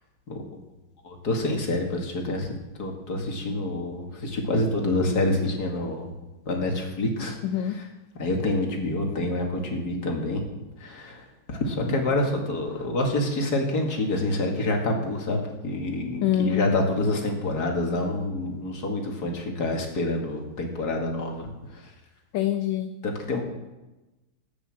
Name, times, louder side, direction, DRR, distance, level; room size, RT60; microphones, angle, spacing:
voice 1, 1.0-2.5 2.8-6.1 6.5-7.4 8.2-10.4 10.8-11.2 11.5-21.5 23.0-23.4, left 2 dB, 50° left, 1 dB, 2.7 m, -27 dB
voice 2, 7.4-7.8 16.2-16.8 22.3-22.9, left 11 dB, 70° left, 7 dB, 1.5 m, -25 dB
14.0 x 9.3 x 7.6 m, 1.1 s
omnidirectional pair, 2.2 m